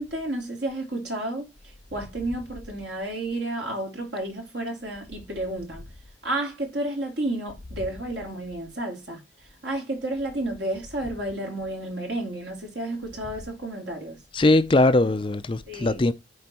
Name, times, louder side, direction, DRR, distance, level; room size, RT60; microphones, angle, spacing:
voice 1, 0.0-1.5 1.9-5.8 6.2-9.2 9.6-14.2 15.7-16.1, right 1 dB, 65° right, 3.1 m, -31 dB
voice 2, 14.3-16.1, left 2 dB, 25° left, 0.4 m, -20 dB
9.6 x 4.4 x 4.3 m
head